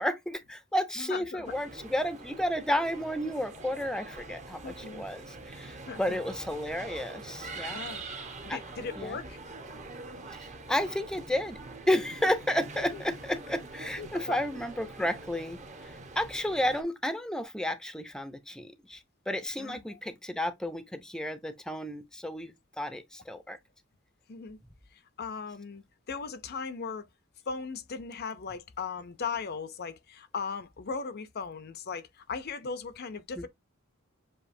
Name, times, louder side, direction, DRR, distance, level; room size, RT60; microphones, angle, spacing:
voice 1, 0.0-7.8 8.5-8.6 9.0-9.2 10.3-11.6 11.9-23.6 33.4-33.5, left 1 dB, 5° left, 0.6 m, -32 dB
voice 2, 1.0-1.5 4.6-5.1 5.9-6.2 7.7-8.0 8.4-9.4 12.9-13.0 14.0-14.4 19.6-20.0 24.3-24.6 24.9-27.1 27.5-33.5, left 5 dB, 50° left, 0.6 m, -38 dB
sound 1, 1.4-16.8, right 3 dB, 35° right, 1.0 m, -44 dB
7.1 x 2.8 x 2.6 m
head